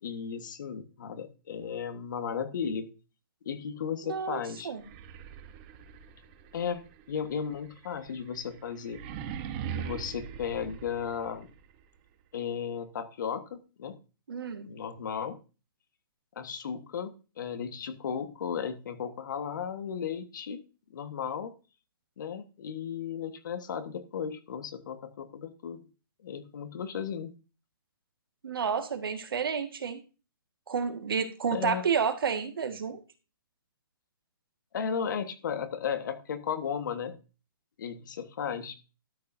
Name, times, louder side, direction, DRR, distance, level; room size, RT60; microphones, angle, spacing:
voice 1, 0.0-2.9 3.4-4.7 6.5-6.8 7.1-9.0 9.7-11.5 12.3-14.0 14.6-15.4 16.3-17.1 17.4-20.6 20.9-21.5 22.2-25.8 26.2-27.3 31.5-31.8 34.7-37.1 37.8-38.7, left 7 dB, 60° left, 9 dB, 1.5 m, -35 dB
voice 2, 4.0-4.8 14.3-14.7 28.4-30.0 30.7-33.0, right 6 dB, 75° right, 7 dB, 1.8 m, -30 dB
sound 1, 4.7-11.6, right 8 dB, 30° right, 1.0 m, -42 dB
12.5 x 8.2 x 2.7 m, 0.32 s
hypercardioid pair, 155°, 12 cm